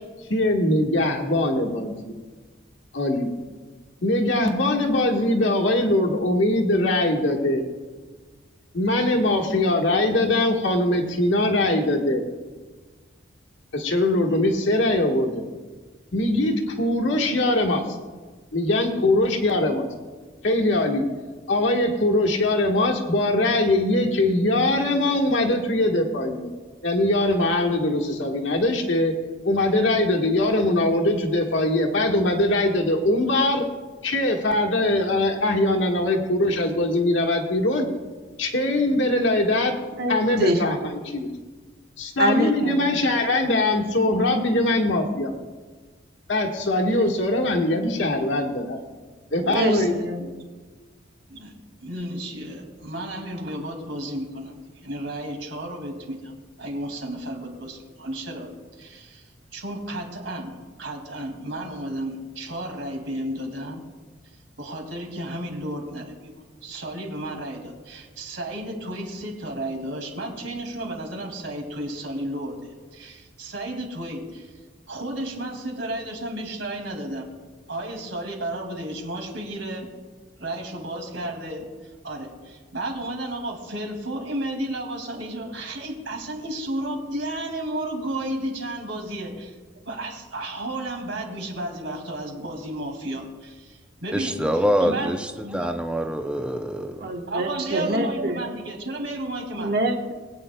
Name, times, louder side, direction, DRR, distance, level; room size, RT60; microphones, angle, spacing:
voice 1, 0.3-2.2 2.9-3.3 4.0-7.6 8.7-12.2 13.7-15.4 16.1-17.8 18.5-19.9 20.4-21.0 21.5-26.5 26.8-29.1 29.4-33.6 34.0-37.8 38.4-39.7 40.1-41.3 42.0-45.4 46.3-48.8 49.3-49.9, left 1 dB, 70° left, 1 dB, 1.4 m, -22 dB
voice 2, 39.9-40.7 42.2-43.0 46.8-47.1 49.4-50.3 97.0-98.4 99.6-100.1, right 1 dB, 55° right, 3 dB, 1.2 m, -26 dB
voice 3, 51.3-56.3 56.6-59.2 59.5-63.8 64.6-74.5 74.9-77.3 77.7-80.0 80.4-81.7 82.0-89.6 89.9-95.1 95.4-95.7 97.3-99.8, right 1 dB, 70° right, 2 dB, 2.3 m, -33 dB
voice 4, 94.1-95.2 95.5-97.1, equal, 5° right, 5 dB, 0.5 m, -25 dB
22.0 x 8.9 x 2.2 m, 1.4 s
head